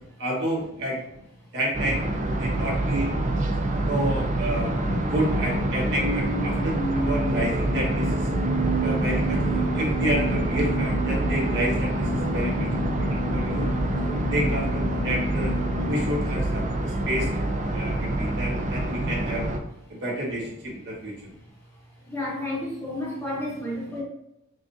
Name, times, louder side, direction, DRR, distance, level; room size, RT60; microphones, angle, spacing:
voice 1, 0.2-1.0 1.5-2.1 2.4-3.1 3.8-4.8 5.0-8.3 8.8-12.7 13.0-13.7 14.3-15.5 15.9-19.4 19.9-21.1, right 1 dB, 55° right, -5 dB, 1.4 m, -30 dB
sound 1, 1.7-19.6, right 1 dB, 35° right, 0.4 m, -26 dB
sound 2, 4.9-17.1, right 1 dB, 55° left, 0.6 m, -32 dB
voice 2, 22.1-24.0, left 1 dB, 10° left, -5 dB, 1.0 m, -31 dB
4.7 x 2.5 x 2.6 m, 0.81 s
head